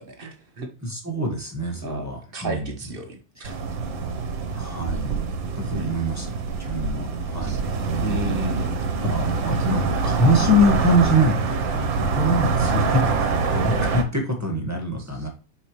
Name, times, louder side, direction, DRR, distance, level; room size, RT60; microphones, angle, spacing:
voice 1, 0.0-0.7 1.8-2.0 2.3-3.5 5.7-5.9 7.4-7.6 8.0-8.8, right 1 dB, 35° right, 4 dB, 1.0 m, -32 dB
voice 2, 0.8-2.7 3.4-3.6 4.5-5.2 5.5-6.3 6.6-7.6 8.9-15.3, equal, 10° right, 0 dB, 1.1 m, -24 dB
sound 1, 3.4-14.0, right 5 dB, 65° right, 1.6 m, -25 dB
7.4 x 4.9 x 3.1 m, 0.36 s
omnidirectional pair, 2.4 m